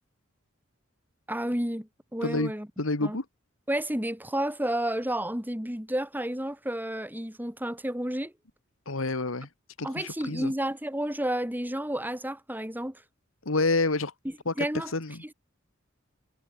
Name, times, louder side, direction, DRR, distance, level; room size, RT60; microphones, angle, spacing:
voice 1, 1.3-2.7 3.0-3.2 3.7-8.3 9.8-13.0 14.6-14.9, right 1 dB, 10° right, 4.5 m, -31 dB
voice 2, 2.2-2.5 2.8-3.3 8.9-9.5 9.8-10.5 13.5-14.1 14.5-15.2, left 3 dB, 80° left, 1.8 m, -28 dB
head